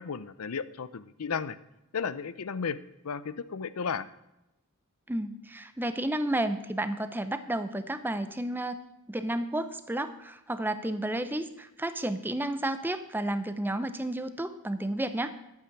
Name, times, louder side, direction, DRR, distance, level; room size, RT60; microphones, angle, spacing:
voice 1, 0.0-1.6 1.9-2.8 3.0-4.1, left 6 dB, 90° left, 15 dB, 0.6 m, -34 dB
voice 2, 5.1-8.8 9.1-15.3, right 1 dB, 10° right, 11 dB, 0.7 m, -31 dB
11.5 x 8.5 x 5.9 m, 0.92 s
head